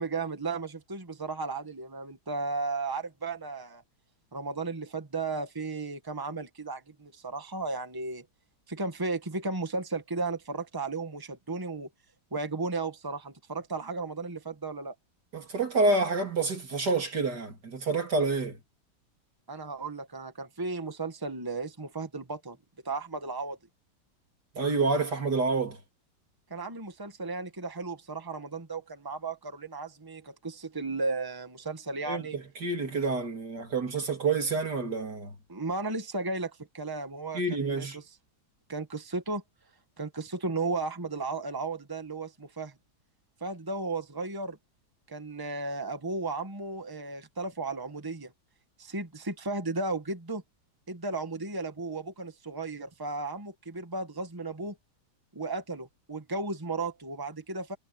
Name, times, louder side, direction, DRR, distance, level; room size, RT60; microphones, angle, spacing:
voice 1, 0.0-3.8 4.3-8.2 8.7-11.9 12.3-14.9 19.5-22.6 22.8-23.6 26.5-32.4 35.5-38.0 38.7-39.4 40.0-42.7 43.4-44.6 45.1-48.3 48.8-50.4 50.9-54.8 55.3-57.8, right 3 dB, 15° right, 1.7 m, -34 dB
voice 2, 15.3-18.6 24.6-25.8 32.1-35.3 37.3-38.0, right 3 dB, 80° right, 4.0 m, -28 dB
omnidirectional pair, 1.8 m